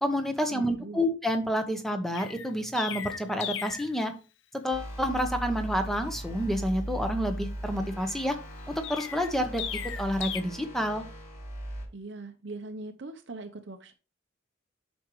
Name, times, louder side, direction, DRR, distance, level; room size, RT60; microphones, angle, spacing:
voice 1, 0.0-4.1 4.5-8.4 8.7-9.6 10.0-11.0, equal, ahead, 0.8 m, -29 dB
voice 2, 0.5-1.0 11.9-13.9, right 2 dB, 55° right, 0.7 m, -41 dB
Chirp tweet, 2.1-3.9 8.8-10.4, left 9 dB, 60° left, 0.7 m, -36 dB
sound 1, 4.7-11.8, right 1 dB, 40° left, 4.6 m, -38 dB
8.7 x 6.1 x 3.0 m
head